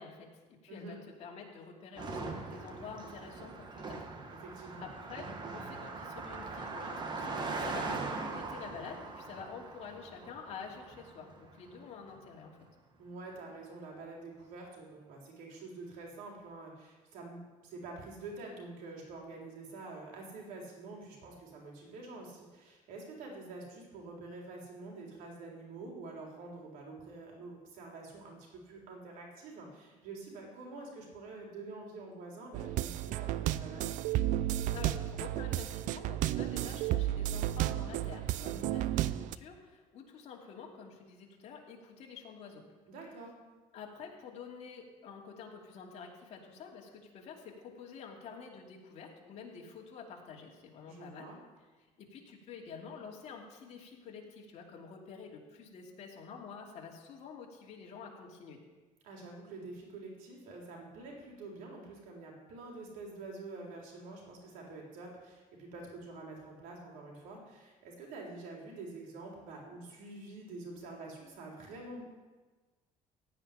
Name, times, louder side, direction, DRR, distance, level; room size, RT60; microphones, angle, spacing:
voice 1, 0.0-4.0 4.8-12.6 34.7-42.6 43.7-51.3 52.0-58.6, left 5 dB, 55° left, -1 dB, 2.8 m, -48 dB
Car passing by, 2.0-11.5, right 3 dB, 35° right, 1.4 m, -41 dB
voice 2, 4.3-4.9 11.7-11.8 13.0-33.9 38.5-38.8 42.9-43.4 50.8-51.4 59.0-72.0, right 3 dB, 85° right, -1 dB, 3.8 m, -47 dB
sound 1, 32.5-39.4, right 14 dB, 70° right, 0.5 m, -33 dB
16.0 x 5.3 x 9.9 m, 1.3 s
cardioid pair, 145°, 14 cm